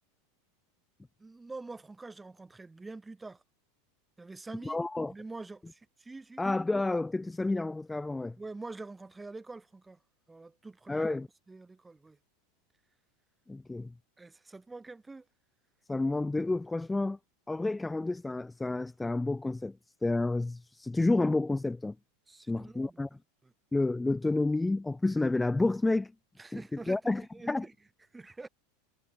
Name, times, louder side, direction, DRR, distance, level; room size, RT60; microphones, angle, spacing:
voice 1, 1.2-3.4 4.2-4.8 5.1-6.4 8.4-10.0 10.3-11.1 11.5-12.2 14.2-15.2 22.3-23.0 23.4-23.5 26.4-27.7 28.1-28.5, right 3 dB, 10° right, 2.8 m, -45 dB
voice 2, 4.6-5.1 6.4-8.3 10.9-11.3 13.5-13.9 15.9-17.2 17.5-19.8 20.0-21.9 22.5-23.1 23.7-26.1 26.5-26.6 26.9-27.7, left 2 dB, 10° left, 1.6 m, -30 dB
figure-of-eight pair, 85°, 0 cm